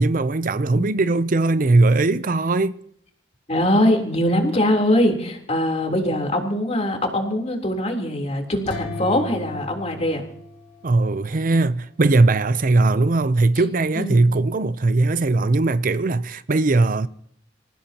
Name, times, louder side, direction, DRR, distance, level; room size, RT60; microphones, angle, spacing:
voice 1, 0.0-2.8 10.8-17.1, right 2 dB, 50° right, 0.6 m, -19 dB
voice 2, 3.5-10.2 13.9-14.3, left 1 dB, 35° left, 3.6 m, -22 dB
sound 1, 8.7-11.5, left 2 dB, 85° left, 3.3 m, -36 dB
27.0 x 15.5 x 2.9 m
head